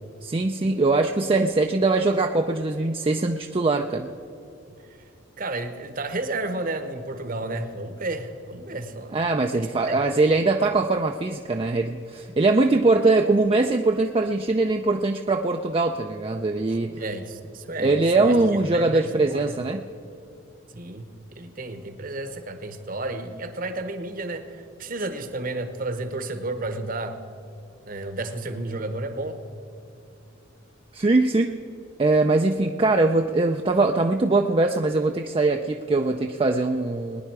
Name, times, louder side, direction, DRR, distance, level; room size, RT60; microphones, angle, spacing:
voice 1, 0.2-4.1 9.1-16.9 17.8-19.8 30.9-31.5 32.0-37.2, right 3 dB, 25° right, 4 dB, 0.4 m, -22 dB
voice 2, 5.4-9.2 9.5-10.0 16.7-18.4 18.7-19.6 20.7-27.2 27.9-29.4, right 2 dB, 45° right, 9 dB, 1.0 m, -32 dB
21.0 x 10.0 x 4.8 m, 2.6 s
head